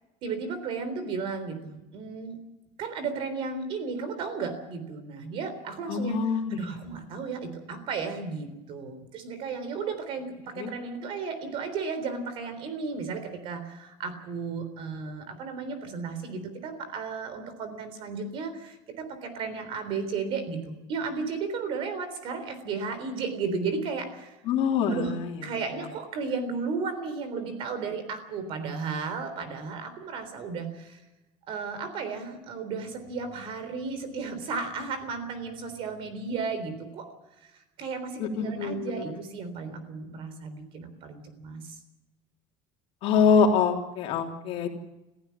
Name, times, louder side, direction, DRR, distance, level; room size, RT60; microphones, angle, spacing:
voice 1, 0.2-2.4 2.8-24.4 24.9-25.1 25.4-31.0 31.5-37.1 37.4-37.5 37.8-41.7, right 4 dB, 45° right, 11 dB, 3.6 m, -34 dB
voice 2, 5.9-6.6 10.6-10.7 24.4-25.1 38.2-39.0 43.0-44.7, left 6 dB, 50° left, 2 dB, 3.4 m, -24 dB
28.5 x 15.5 x 7.1 m, 1.0 s
cardioid pair, 180°, 13 cm